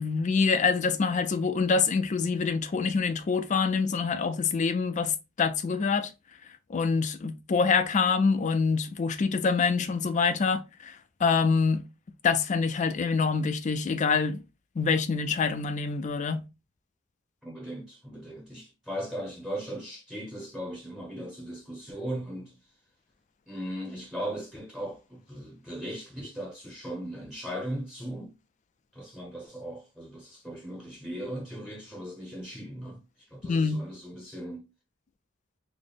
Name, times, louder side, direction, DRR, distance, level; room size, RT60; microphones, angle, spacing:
voice 1, 0.0-6.1 6.7-11.8 12.2-14.4 14.8-16.4 33.5-33.8, left 5 dB, 35° left, 0.3 m, -26 dB
voice 2, 17.4-22.6 23.5-28.3 28.9-33.0 33.3-34.7, equal, 5° right, 0.7 m, -38 dB
4.0 x 2.1 x 3.3 m
head